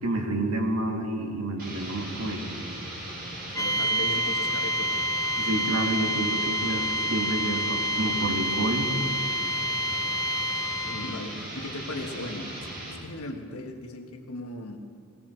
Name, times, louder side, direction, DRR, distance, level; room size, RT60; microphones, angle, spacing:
voice 1, 0.0-2.5 5.4-8.9, right 1 dB, 70° right, 2 dB, 2.1 m, -29 dB
sound 1, 1.6-13.0, right 1 dB, 45° right, 4.8 m, -38 dB
voice 2, 3.6-5.0 10.8-12.5 12.9-14.8, left 2 dB, 80° left, 4 dB, 1.5 m, -37 dB
sound 2, 3.6-11.3, equal, 15° left, 0.7 m, -28 dB
19.0 x 17.0 x 4.5 m, 2.4 s
head